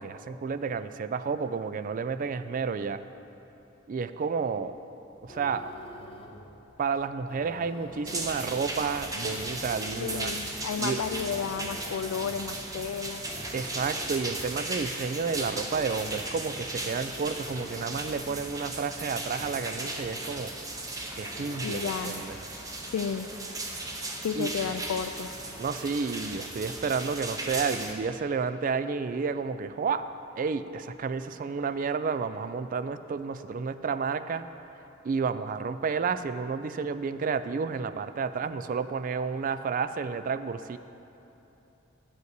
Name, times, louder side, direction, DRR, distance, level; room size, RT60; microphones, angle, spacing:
voice 1, 0.0-3.0 3.9-4.8 5.2-5.7 6.8-10.3 10.8-11.0 13.5-20.5 21.2-22.4 24.4-24.5 25.6-30.0 30.4-34.5 35.0-40.8, right 5 dB, 40° right, 12 dB, 0.3 m, -31 dB
sound 1, 5.1-22.6, left 1 dB, 25° left, 0.6 m, -48 dB
sound 2, 8.1-27.9, right 2 dB, 15° right, 0.8 m, -36 dB
voice 2, 10.0-13.2 21.6-22.2 22.8-23.3 24.2-25.3, left 6 dB, 80° left, 7 dB, 0.4 m, -32 dB
9.0 x 5.5 x 8.1 m, 3.0 s
head